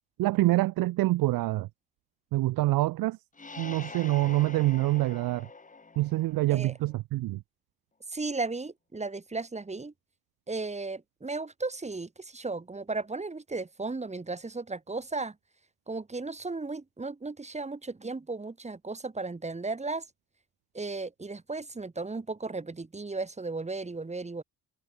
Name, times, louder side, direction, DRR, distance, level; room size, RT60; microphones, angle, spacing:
voice 1, 0.2-1.7 2.3-3.2 3.6-5.5 6.0-7.4, right 17 dB, 75° right, 0.7 m, -26 dB
sound 1, 3.3-6.9, left 4 dB, 20° left, 5.1 m, -45 dB
voice 2, 8.1-9.9 10.5-15.3 15.9-20.0 20.7-24.4, right 3 dB, 20° right, 6.7 m, -35 dB
cardioid pair, 115°, 35 cm